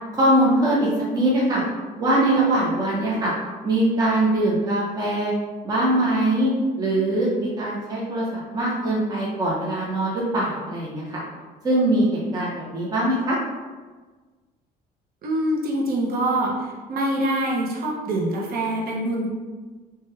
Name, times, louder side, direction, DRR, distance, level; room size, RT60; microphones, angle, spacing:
voice 1, 0.1-1.6 2.0-3.3 3.6-5.3 5.6-11.2 11.6-13.4, right 1 dB, 20° right, -6 dB, 0.7 m, -22 dB
voice 2, 15.2-19.3, right 1 dB, 60° right, -3 dB, 0.7 m, -25 dB
3.2 x 2.2 x 3.2 m, 1.4 s
cardioid pair, 110°, 17 cm